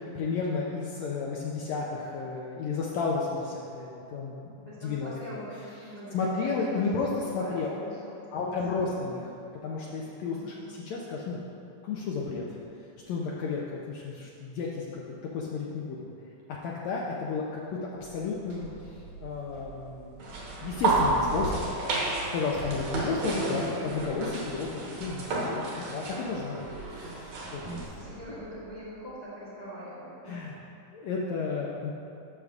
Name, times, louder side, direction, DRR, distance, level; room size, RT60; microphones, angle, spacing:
voice 1, 0.1-4.3 4.8-5.1 6.1-7.8 8.3-9.3 9.6-11.4 11.8-12.6 13.1-15.0 15.3-16.1 16.6-18.9 19.2-20.2 20.6-24.7 25.0-27.8 30.3-30.6 30.9-31.9, left 4 dB, 85° left, -4 dB, 1.5 m, -32 dB
voice 2, 4.6-9.1 10.4-10.7 27.7-30.4, equal, 45° left, -11 dB, 0.5 m, -43 dB
Sliding door, 17.9-22.8 24.4-29.3, right 3 dB, 80° right, 3.2 m, -49 dB
sound 1, 20.2-27.9, right 2 dB, 65° right, 2.0 m, -31 dB
12.0 x 6.4 x 2.4 m, 2.6 s
omnidirectional pair, 3.9 m